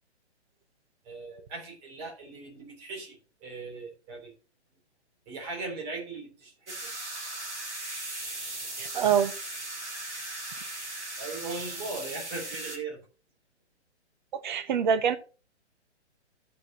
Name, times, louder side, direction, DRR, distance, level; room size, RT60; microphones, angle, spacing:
voice 1, 1.0-4.3 5.3-6.9 11.2-13.0, right 3 dB, 25° right, 3.3 m, -39 dB
sound 1, 6.7-12.8, right 2 dB, 75° right, 3.7 m, -38 dB
voice 2, 8.8-9.3 10.6-10.7 14.3-15.2, right 8 dB, 45° right, 1.1 m, -25 dB
14.0 x 6.6 x 2.8 m
figure-of-eight pair, 125°, 34 cm